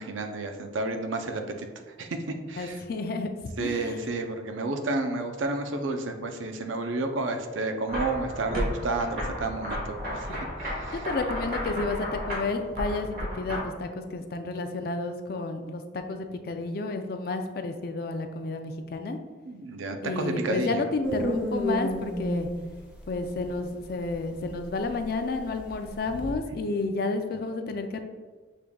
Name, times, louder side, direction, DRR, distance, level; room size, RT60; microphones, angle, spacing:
voice 1, 0.0-2.2 2.5-2.8 3.6-11.0 19.5-20.8, right 2 dB, 85° right, 6 dB, 0.5 m, -31 dB
voice 2, 2.6-4.0 10.3-10.4 10.9-19.2 20.0-22.5 23.1-28.0, left 3 dB, 50° left, 6 dB, 0.4 m, -31 dB
sound 1, 7.9-13.6, equal, 45° right, 1.4 m, -33 dB
sound 2, 21.0-26.3, equal, 5° right, 0.6 m, -32 dB
6.5 x 3.5 x 2.3 m, 1.4 s
head